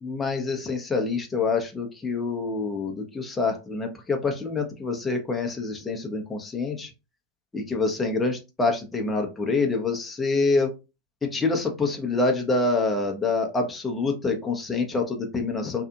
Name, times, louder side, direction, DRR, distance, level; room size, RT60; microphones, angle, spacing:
voice 1, 0.0-6.9 7.5-10.7 11.2-15.8, left 3 dB, 15° left, 2 dB, 0.8 m, -26 dB
2.7 x 2.4 x 2.4 m, 0.28 s
figure-of-eight pair, 85°, 0 cm